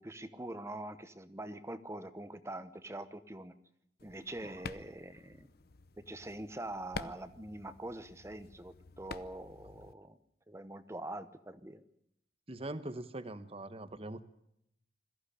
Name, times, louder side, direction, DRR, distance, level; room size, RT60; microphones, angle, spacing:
voice 1, 0.0-3.5 4.0-5.5 6.0-10.2 10.5-11.8, right 1 dB, 15° right, 12 dB, 0.9 m, -44 dB
sound 1, 4.0-9.9, left 3 dB, 55° left, 0.8 m, -48 dB
voice 2, 12.5-14.2, right 1 dB, 35° right, 11 dB, 1.1 m, -42 dB
21.5 x 14.5 x 10.0 m, 0.77 s
head